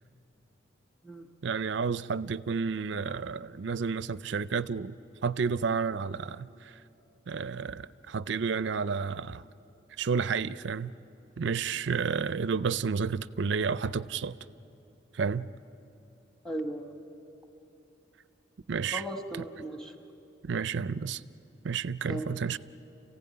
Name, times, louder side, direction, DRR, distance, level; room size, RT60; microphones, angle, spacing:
voice 1, 1.4-4.9 5.2-6.7 7.3-9.4 10.0-10.9 11.4-14.4 15.1-15.5 18.7-19.0 20.4-21.2 21.6-22.6, right 5 dB, 70° right, 0.5 m, -31 dB
voice 2, 16.4-17.0 18.9-19.9 22.1-22.4, right 1 dB, 5° left, 1.3 m, -37 dB
29.0 x 16.0 x 9.5 m
head